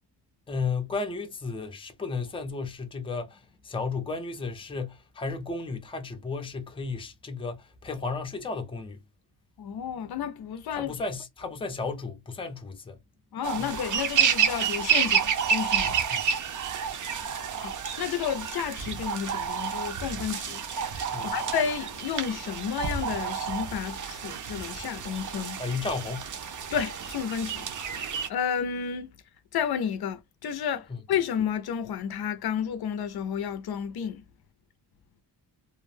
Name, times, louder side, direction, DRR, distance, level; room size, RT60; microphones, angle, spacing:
voice 1, 0.5-9.0 10.7-13.0 13.6-13.8 16.1-16.2 21.1-21.4 25.6-26.3 30.9-31.0, left 4 dB, 15° left, 0.5 m, -34 dB
voice 2, 9.6-10.9 13.3-15.9 17.6-25.6 26.7-29.1 29.5-34.2, left 8 dB, 65° left, 0.5 m, -31 dB
sound 1, 13.4-28.3, right 7 dB, 50° right, 0.6 m, -29 dB
2.5 x 2.1 x 3.1 m
wide cardioid pair, 140°, 41 cm